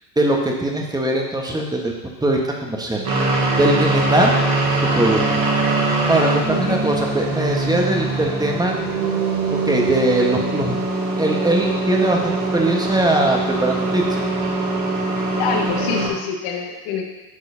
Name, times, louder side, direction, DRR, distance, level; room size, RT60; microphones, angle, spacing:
voice 1, 0.2-1.9 2.2-3.0 3.6-4.3 5.0-5.2 6.1-8.7 9.5-10.8 11.2-14.3, right 1 dB, 10° right, 0 dB, 1.3 m, -20 dB
sound 1, 3.0-16.1, right 2 dB, 35° right, 2.2 m, -22 dB
voice 2, 6.5-6.8 15.3-17.0, left 6 dB, 55° left, 2 dB, 1.6 m, -26 dB
9.9 x 6.2 x 2.8 m, 1.1 s
hypercardioid pair, 75°, 48 cm